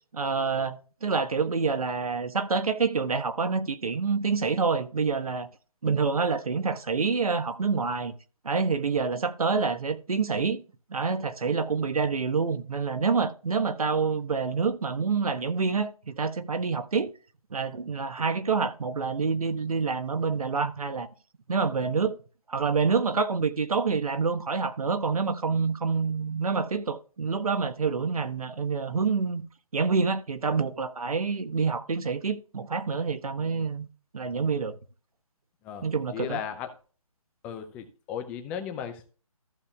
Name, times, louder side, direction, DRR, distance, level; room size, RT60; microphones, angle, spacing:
voice 1, 0.1-5.5 5.8-8.1 8.4-10.6 10.9-17.1 17.5-21.1 21.5-22.2 22.5-29.4 29.7-33.9 34.1-34.8 35.8-36.4, right 5 dB, 75° right, 1.2 m, -27 dB
voice 2, 35.6-36.7 37.4-39.1, left 8 dB, 5° left, 0.4 m, -36 dB
14.5 x 6.9 x 2.3 m
hypercardioid pair, 155°, 19 cm